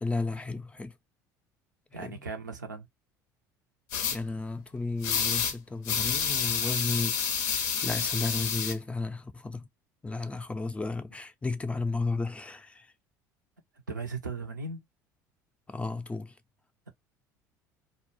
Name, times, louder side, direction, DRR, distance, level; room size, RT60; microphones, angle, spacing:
voice 1, 0.0-0.9 1.9-2.3 4.1-7.3 7.8-9.7 10.0-12.9 15.7-16.4, left 3 dB, 10° left, 0.4 m, -33 dB
voice 2, 1.9-2.9 13.9-14.8, right 4 dB, 90° right, 0.5 m, -37 dB
sound 1, 3.9-4.2 5.0-5.5 5.8-8.7, left 7 dB, 70° left, 0.5 m, -29 dB
2.1 x 2.1 x 2.9 m
hypercardioid pair, 65°, 10 cm